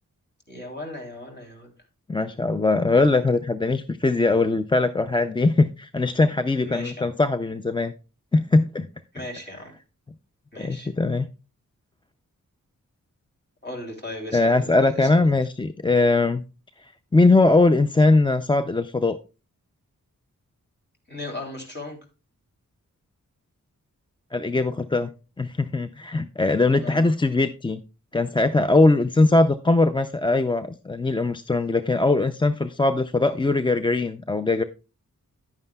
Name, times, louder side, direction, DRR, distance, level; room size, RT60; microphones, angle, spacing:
voice 1, 0.5-1.7 6.6-7.1 9.1-9.7 10.5-10.9 13.6-15.4 21.1-22.0 26.7-27.0, left 2 dB, 30° left, 2 dB, 3.1 m, -37 dB
voice 2, 2.1-7.9 8.3-8.9 10.6-11.3 14.3-16.4 17.1-19.2 24.3-25.1 25.4-27.8 28.1-34.6, left 2 dB, 15° left, 11 dB, 0.4 m, -21 dB
10.5 x 9.4 x 2.3 m, 0.33 s
wide cardioid pair, 75°, 33 cm